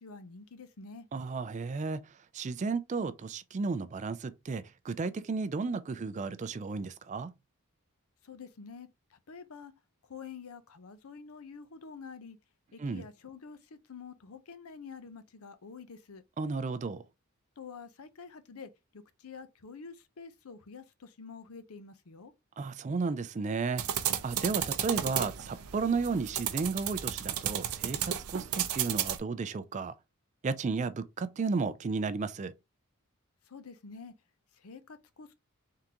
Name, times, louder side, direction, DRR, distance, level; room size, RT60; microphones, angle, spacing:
voice 1, 0.0-1.1 8.2-9.7 10.0-12.4 12.7-16.2 17.6-22.3 33.5-34.1 34.5-35.3, left 5 dB, 80° left, 0.6 m, -48 dB
voice 2, 1.1-2.0 2.3-7.3 12.8-13.0 16.4-17.0 22.6-23.8 24.2-29.9 30.4-32.5, right 4 dB, 35° right, 0.3 m, -33 dB
sound 1, 23.8-29.2, right 10 dB, 85° right, 0.5 m, -33 dB
3.7 x 3.5 x 2.9 m
head